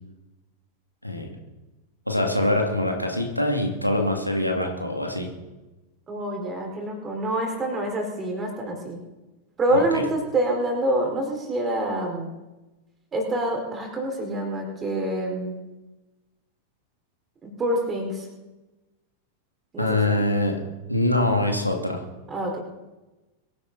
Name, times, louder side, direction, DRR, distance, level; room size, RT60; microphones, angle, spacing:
voice 1, 2.1-5.3 9.7-10.0 19.8-20.5 20.9-22.0, left 1 dB, 90° left, 1 dB, 2.4 m, -24 dB
voice 2, 6.1-9.0 9.6-12.3 13.1-15.5 17.4-18.3 19.7-20.1 22.3-22.6, right 1 dB, 20° right, 1 dB, 4.6 m, -26 dB
23.0 x 11.5 x 4.1 m, 1.1 s
figure-of-eight pair, 90°, 0 cm